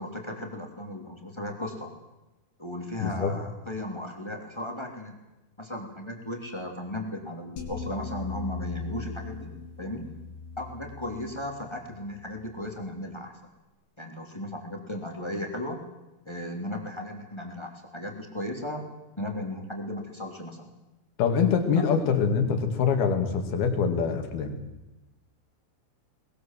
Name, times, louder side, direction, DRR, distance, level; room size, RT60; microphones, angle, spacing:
voice 1, 0.0-1.9 2.6-5.2 5.6-9.5 9.8-10.1 10.6-13.3 14.0-15.8 16.2-18.8 19.2-20.7 21.9-22.0, left 1 dB, 10° left, 3 dB, 2.3 m, -36 dB
voice 2, 3.0-3.3 21.2-24.6, left 6 dB, 65° left, 7 dB, 4.1 m, -24 dB
sound 1, 7.6-12.8, left 4 dB, 85° left, 5.4 m, -40 dB
22.0 x 20.5 x 7.5 m, 1.0 s
omnidirectional pair, 5.0 m